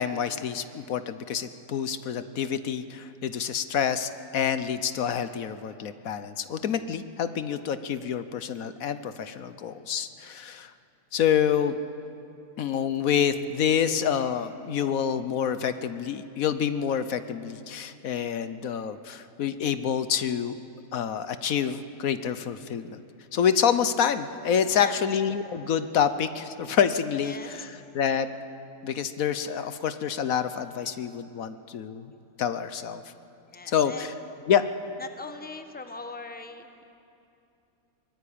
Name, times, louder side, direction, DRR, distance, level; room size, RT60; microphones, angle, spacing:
voice 1, 0.0-10.7 11.1-11.8 12.6-20.5 20.9-23.0 23.3-28.3 28.8-32.1 32.4-33.0 33.7-34.1 34.5-34.6, left 8 dB, 75° left, 11 dB, 1.3 m, -27 dB
voice 2, 27.2-27.7 33.5-34.1 35.0-36.8, left 4 dB, 5° left, 7 dB, 1.1 m, -40 dB
23.5 x 21.5 x 8.6 m, 2.7 s
omnidirectional pair, 1.5 m